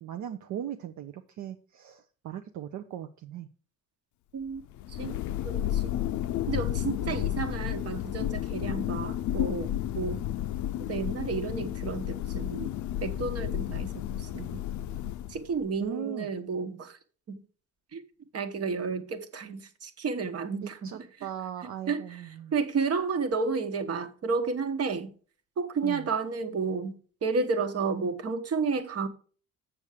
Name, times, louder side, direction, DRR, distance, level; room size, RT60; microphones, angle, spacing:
voice 1, 0.0-3.5 7.0-7.2 15.8-16.3 20.5-22.5 25.8-26.1, right 10 dB, 70° right, 0.7 m, -38 dB
Thunder, 4.6-15.6, left 12 dB, 75° left, 0.4 m, -32 dB
voice 2, 4.9-5.2 5.4-6.0 6.5-10.2 10.9-12.7 13.0-14.6 15.3-17.0 17.3-17.4 17.9-18.0 18.3-20.9 21.9-22.2 22.5-25.1 25.6-26.9 27.2-29.1, right 4 dB, 50° right, 1.2 m, -31 dB
7.1 x 7.0 x 4.9 m
cardioid pair, 90°, 30 cm